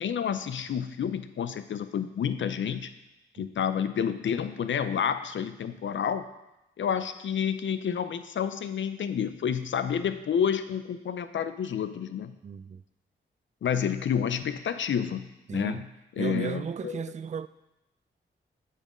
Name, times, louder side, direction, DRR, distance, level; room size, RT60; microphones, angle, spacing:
voice 1, 0.0-2.9 3.4-6.3 6.8-12.3 13.6-15.9 16.2-17.0, left 8 dB, 70° left, 0.5 m, -29 dB
voice 2, 12.4-12.8 15.5-15.8 16.2-17.5, right 7 dB, 35° right, 0.3 m, -34 dB
7.7 x 4.5 x 5.0 m
cardioid pair, 50°, 21 cm